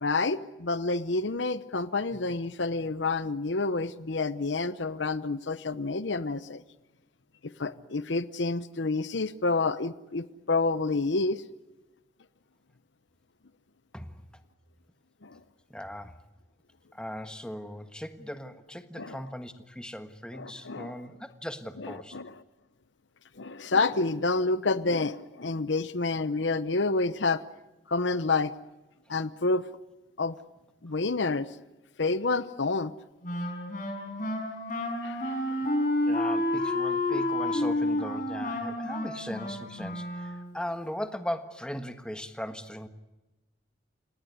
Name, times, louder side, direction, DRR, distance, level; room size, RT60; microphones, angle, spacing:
voice 1, 0.0-6.6 7.4-11.4 15.2-15.4 19.0-19.2 20.3-21.0 21.8-22.4 23.4-27.4 27.9-28.5 29.1-29.6 30.2-30.3 30.8-31.5 32.0-32.9 35.0-35.7, left 3 dB, 70° left, 14 dB, 0.9 m, -29 dB
voice 2, 15.7-16.1 16.9-22.2 35.6-35.7 36.0-42.9, equal, 5° left, 9 dB, 1.5 m, -38 dB
Wind instrument woodwind instrument, 33.2-40.6, left 1 dB, 45° left, 6.0 m, -30 dB
29.0 x 18.0 x 9.7 m, 1.1 s
head